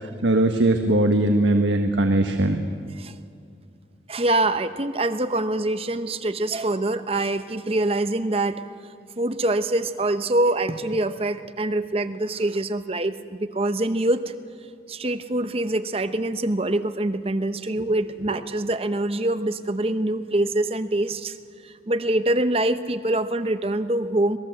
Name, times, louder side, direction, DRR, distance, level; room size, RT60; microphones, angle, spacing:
voice 1, 0.2-2.6, right 1 dB, 85° right, 5 dB, 1.3 m, -20 dB
voice 2, 4.1-8.6 9.2-14.3 14.9-21.4 21.6-24.4, right 1 dB, 30° right, 11 dB, 0.8 m, -24 dB
26.5 x 20.0 x 7.8 m, 2.4 s
head